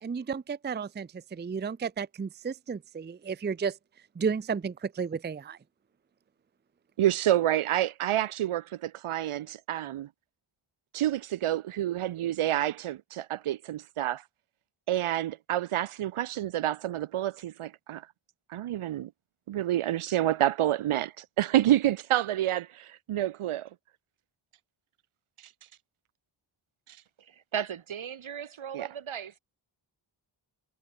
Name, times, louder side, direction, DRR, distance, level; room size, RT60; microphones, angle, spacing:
voice 1, 0.0-3.8 4.2-5.6, right 6 dB, 20° right, 0.5 m, -33 dB
voice 2, 7.0-10.1 10.9-14.2 14.9-18.1 18.5-19.1 19.5-23.7 25.4-25.5 26.9-27.0 28.7-28.9, right 13 dB, 90° right, 0.7 m, -28 dB
voice 3, 27.5-29.4, right 8 dB, 70° right, 2.0 m, -36 dB
wide cardioid pair, 165°, 49 cm